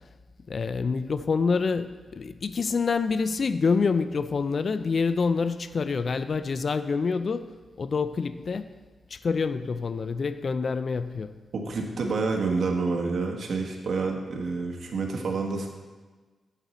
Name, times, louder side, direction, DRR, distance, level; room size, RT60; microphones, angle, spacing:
voice 1, 0.5-8.8 9.1-11.4, left 5 dB, 55° left, 12 dB, 0.4 m, -27 dB
voice 2, 11.5-15.7, right 4 dB, 70° right, 2 dB, 1.3 m, -28 dB
8.0 x 7.7 x 4.2 m, 1.3 s
cardioid pair, 70°, 0 cm